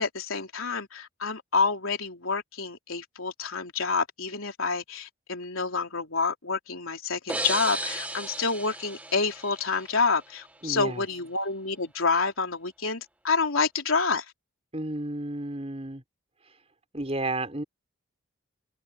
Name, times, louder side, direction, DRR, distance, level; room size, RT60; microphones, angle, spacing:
voice 1, 0.0-14.3, left 4 dB, 75° left, 3.6 m, -28 dB
sound 1, 7.3-10.1, right 1 dB, 5° right, 1.2 m, -34 dB
voice 2, 10.6-11.0 14.7-16.0 16.9-17.6, right 2 dB, 30° right, 4.5 m, -32 dB
head